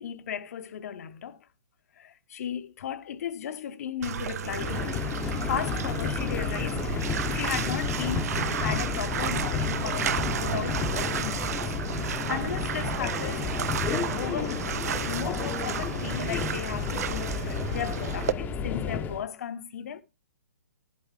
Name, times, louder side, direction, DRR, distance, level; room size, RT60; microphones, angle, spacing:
voice 1, 0.0-1.5 2.0-11.7 11.9-13.4 14.2-20.0, left 9 dB, 55° left, 0.8 m, -36 dB
Bathtub (filling or washing), 4.0-18.3, right 9 dB, 55° right, 0.4 m, -33 dB
Subway metro underground, 4.4-19.2, left 6 dB, 15° left, 0.7 m, -31 dB
11.5 x 8.3 x 3.3 m
figure-of-eight pair, 125°, 10 cm